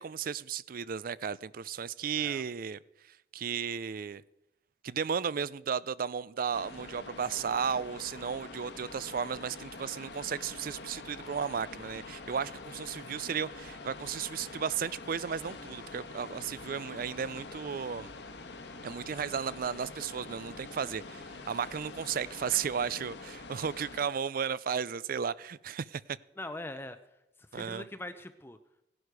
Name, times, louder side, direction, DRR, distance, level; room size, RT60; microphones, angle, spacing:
voice 1, 0.0-2.8 3.3-4.2 4.8-18.1 18.8-26.0 27.5-27.9, right 7 dB, 55° right, 19 dB, 0.4 m, -34 dB
sound 1, 6.5-24.1, left 3 dB, 70° left, 1.4 m, -46 dB
voice 2, 26.4-27.0 27.5-28.6, left 1 dB, 15° left, 9 dB, 0.6 m, -42 dB
17.0 x 11.5 x 4.8 m, 0.89 s
head